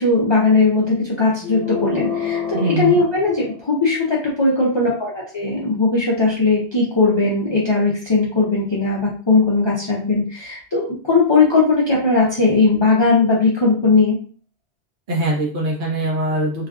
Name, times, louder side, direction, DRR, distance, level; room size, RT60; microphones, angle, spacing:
voice 1, 0.0-14.2, left 3 dB, 45° left, -5 dB, 0.3 m, -18 dB
sound 1, 1.4-4.1, left 7 dB, 25° left, 1.2 m, -28 dB
voice 2, 2.5-3.0 15.1-16.7, right 1 dB, 45° right, -3 dB, 0.9 m, -22 dB
3.2 x 2.4 x 2.3 m, 0.43 s
omnidirectional pair, 1.2 m